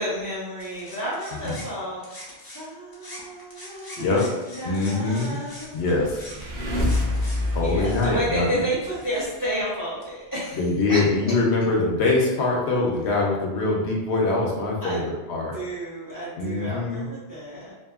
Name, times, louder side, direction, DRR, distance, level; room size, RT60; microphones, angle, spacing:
voice 1, 0.0-5.9 7.6-10.6 10.9-11.0 14.8-15.1 15.5-17.7, equal, 20° right, -9 dB, 0.7 m, -31 dB
sound 1, 0.6-2.7 2.9-9.2, left 1 dB, 30° left, 0.4 m, -44 dB
voice 2, 4.0-4.3 4.6-5.4 5.7-6.2 7.5-8.6 10.5-15.5 16.4-17.1, left 3 dB, 75° left, -2 dB, 0.9 m, -23 dB
sound 2, 5.7-9.3, left 1 dB, 65° right, 0.9 m, -27 dB
2.7 x 2.5 x 2.3 m, 1.1 s
omnidirectional pair, 1.2 m